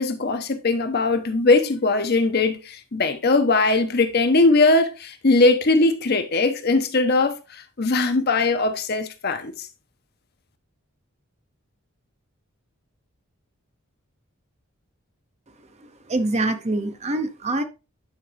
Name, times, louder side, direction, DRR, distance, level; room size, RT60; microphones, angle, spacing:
voice 1, 0.0-9.7, left 3 dB, 50° left, 0.9 m, -20 dB
voice 2, 16.1-17.6, right 2 dB, 30° right, 0.8 m, -24 dB
9.6 x 5.1 x 3.3 m
head